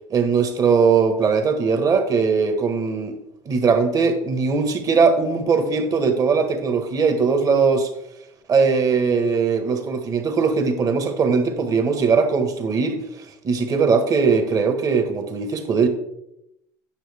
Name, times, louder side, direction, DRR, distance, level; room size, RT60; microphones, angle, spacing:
voice 1, 0.1-3.2 3.4-7.9 8.5-13.0 13.4-15.9, right 5 dB, 40° right, 1.5 m, -20 dB
9.0 x 6.4 x 3.6 m
supercardioid pair, 90°, 9 cm